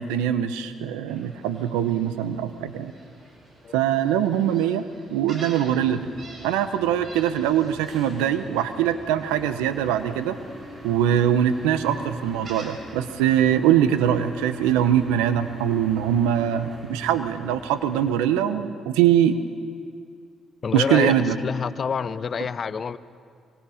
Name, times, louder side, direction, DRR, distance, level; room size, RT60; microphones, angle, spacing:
voice 1, 0.0-2.9 3.7-4.8 5.1-6.1 6.4-10.4 10.8-19.4 20.7-21.4, right 10 dB, 90° right, 11 dB, 0.9 m, -22 dB
Gull seagull, 1.1-12.7, right 2 dB, 50° right, 7.0 m, -48 dB
sound 1, 5.8-18.1, equal, 30° right, 6.8 m, -44 dB
voice 2, 20.6-21.2 21.4-23.0, left 6 dB, 50° left, 16 dB, 0.7 m, -27 dB
24.5 x 24.0 x 5.1 m, 2.2 s
supercardioid pair, 60°, 0 cm